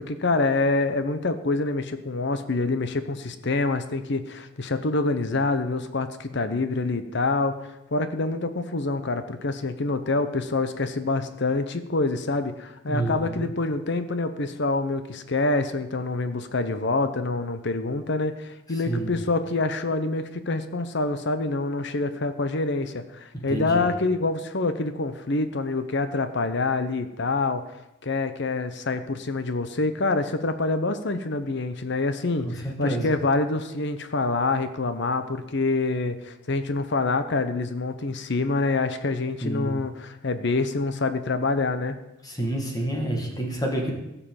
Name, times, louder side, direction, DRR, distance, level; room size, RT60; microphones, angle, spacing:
voice 1, 0.0-7.5 7.9-27.6 28.0-42.0, left 3 dB, 60° left, 10 dB, 0.9 m, -26 dB
voice 2, 12.9-13.5 18.7-19.1 23.3-23.8 32.4-33.1 39.4-39.7 42.2-43.9, right 1 dB, 20° left, 0 dB, 2.1 m, -29 dB
15.5 x 5.7 x 7.2 m, 0.91 s
head